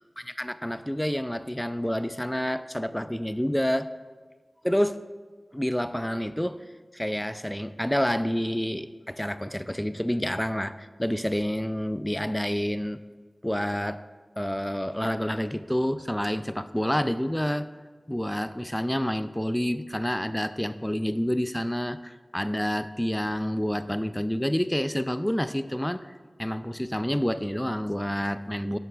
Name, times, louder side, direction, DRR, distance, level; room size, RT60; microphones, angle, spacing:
voice 1, 0.4-3.9 4.6-5.0 5.5-6.6 6.9-13.0 13.4-14.0 14.4-17.7 18.1-26.1 26.4-28.8, equal, 10° left, 13 dB, 0.3 m, -28 dB
10.5 x 6.3 x 2.4 m, 1.4 s
cardioid pair, 45°, 0 cm